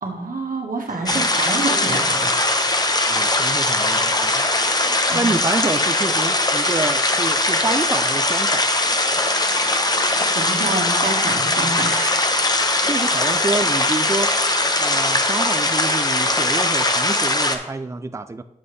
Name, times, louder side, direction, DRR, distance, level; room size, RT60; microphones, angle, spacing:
voice 1, 0.0-2.3 4.8-5.3 10.0-10.1 10.3-12.4, right 3 dB, 70° right, 0 dB, 1.5 m, -28 dB
sound 1, 0.9-16.9, equal, 5° right, 1.8 m, -42 dB
sound 2, 1.1-17.6, left 2 dB, 25° left, 0.7 m, -20 dB
voice 2, 3.1-4.5 5.1-8.6 12.9-14.3 14.8-18.4, right 3 dB, 20° right, 11 dB, 0.4 m, -27 dB
8.0 x 7.2 x 3.2 m, 0.89 s
wide cardioid pair, 95°, 15 cm